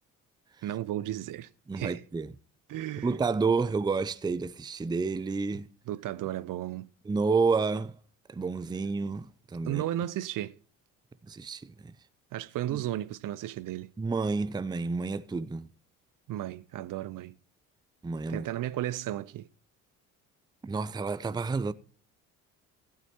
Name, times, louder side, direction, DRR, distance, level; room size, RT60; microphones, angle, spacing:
voice 1, 0.6-1.5 1.8-2.0 2.7-3.1 5.9-6.9 9.7-10.6 12.3-13.9 16.3-17.3 18.3-19.5, right 13 dB, 50° right, 0.7 m, -34 dB
voice 2, 1.7-2.3 3.0-5.7 7.0-7.9 8.3-9.8 11.3-11.9 12.7-12.8 14.0-15.7 18.0-18.5 20.6-21.7, right 4 dB, 10° right, 0.5 m, -30 dB
15.5 x 9.2 x 2.9 m
hypercardioid pair, 55°, 40 cm